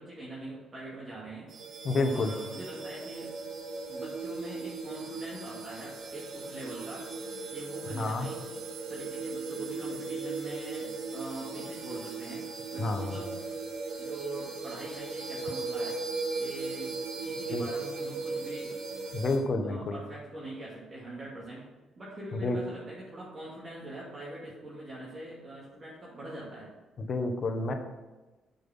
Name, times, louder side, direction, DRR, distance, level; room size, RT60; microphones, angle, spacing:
voice 1, 0.0-1.5 1.9-3.3 3.9-7.1 7.5-8.6 8.9-13.4 14.0-16.0 16.4-17.0 17.2-18.8 19.2-21.6 22.0-26.7, right 1 dB, 35° right, -6 dB, 2.4 m, -43 dB
sound 1, 1.5-19.4, right 3 dB, 80° right, 1.6 m, -37 dB
voice 2, 1.8-2.3 8.0-8.3 12.8-13.2 17.5-17.6 19.1-20.0 22.4-22.6 27.0-27.7, left 3 dB, 45° left, 6 dB, 1.1 m, -29 dB
7.4 x 5.6 x 6.0 m, 1.2 s
cardioid pair, 90°, 0 cm